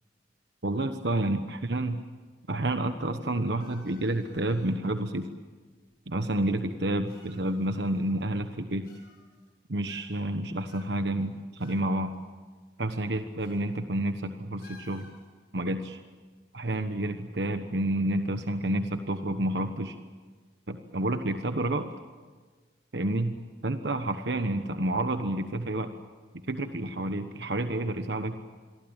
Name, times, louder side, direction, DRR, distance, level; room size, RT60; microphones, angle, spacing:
voice 1, 0.6-2.0 2.5-5.3 6.1-8.9 9.7-12.1 12.8-15.1 15.5-16.0 16.5-20.0 20.7-21.9 22.9-23.4 23.6-25.9 26.5-28.4, right 1 dB, 70° right, 7 dB, 1.2 m, -29 dB
sound 1, 3.6-4.9 5.9-6.0 7.1-8.4 8.8-9.5 9.9-10.3 10.7-11.9 12.1-12.2 13.4-13.7 14.0-14.1 14.6-15.3, left 4 dB, 55° left, 7.2 m, -56 dB
27.0 x 23.0 x 9.0 m, 1.4 s
head